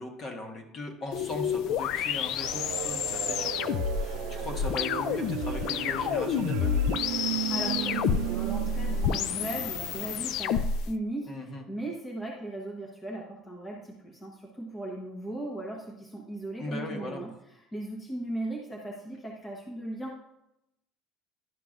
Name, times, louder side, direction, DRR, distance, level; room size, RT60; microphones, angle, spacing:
voice 1, 0.0-6.7 11.3-11.6 16.6-17.2, left 2 dB, 35° left, 2 dB, 1.4 m, -38 dB
sound 1, 1.1-10.9, left 7 dB, 60° left, 0.3 m, -29 dB
sound 2, 2.4-10.1, right 12 dB, 75° right, 0.4 m, -35 dB
voice 2, 7.3-17.3 17.7-20.2, right 1 dB, 15° left, -2 dB, 1.1 m, -37 dB
11.0 x 5.7 x 2.5 m, 0.84 s
cardioid pair, 145°, 0 cm